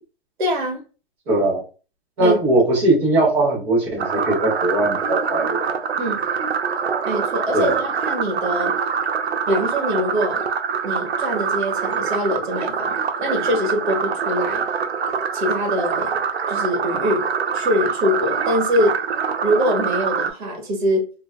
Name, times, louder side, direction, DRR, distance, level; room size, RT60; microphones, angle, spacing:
voice 1, 0.4-0.8 2.2-2.4 6.0-6.2 7.0-8.8 9.5-10.4 10.8-14.6 15.3-16.2 16.5-17.3 17.5-19.0 19.4-21.1, equal, 50° right, 1.1 m, -23 dB
voice 2, 1.3-1.6 2.2-5.8 7.5-7.8, right 2 dB, 10° right, 0.4 m, -19 dB
sound 1, 4.0-20.3, right 6 dB, 75° right, 0.6 m, -24 dB
3.3 x 2.1 x 2.2 m
hypercardioid pair, 145°, 32 cm